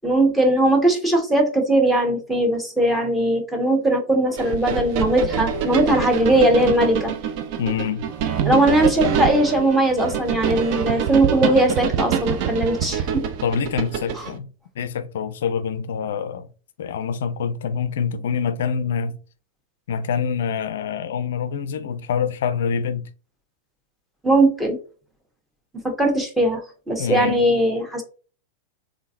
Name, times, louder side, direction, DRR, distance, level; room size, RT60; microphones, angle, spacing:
voice 1, 0.0-7.1 8.4-13.0 24.2-24.8 25.8-28.0, right 1 dB, 5° right, 1.1 m, -19 dB
sound 1, 4.4-14.3, right 8 dB, 45° right, 0.5 m, -25 dB
voice 2, 7.6-8.1 13.4-14.5 14.8-16.5 16.8-19.2 19.9-23.1 27.0-27.4, left 6 dB, 60° left, 0.4 m, -25 dB
3.8 x 3.4 x 2.5 m
figure-of-eight pair, 90°, 0 cm